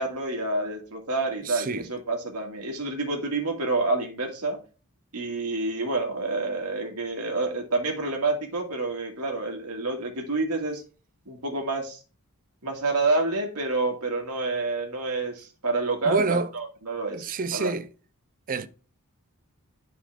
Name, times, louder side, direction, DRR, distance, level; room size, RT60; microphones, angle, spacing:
voice 1, 0.0-4.6 5.1-10.8 11.3-12.0 12.6-17.3 17.5-17.7, right 3 dB, 90° right, 2.0 m, -28 dB
voice 2, 1.4-1.9 16.0-16.5 17.1-17.9 18.5-18.7, right 4 dB, 40° right, 0.5 m, -27 dB
10.0 x 4.4 x 3.5 m
head